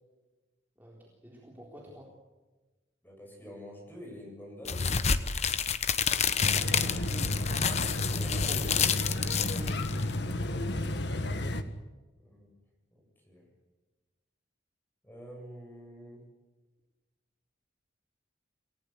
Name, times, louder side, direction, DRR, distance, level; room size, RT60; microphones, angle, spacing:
voice 1, 1.2-2.1 6.6-9.8, equal, 10° right, -3 dB, 4.0 m, -46 dB
voice 2, 3.0-4.9 12.2-12.5 12.9-13.5 15.0-16.3, equal, 10° left, 0 dB, 7.9 m, -47 dB
sound 1, 4.7-10.2, left 6 dB, 35° left, 1.0 m, -29 dB
sound 2, 6.4-11.6, left 1 dB, 65° left, 1.7 m, -32 dB
28.5 x 18.0 x 8.2 m, 1.2 s
head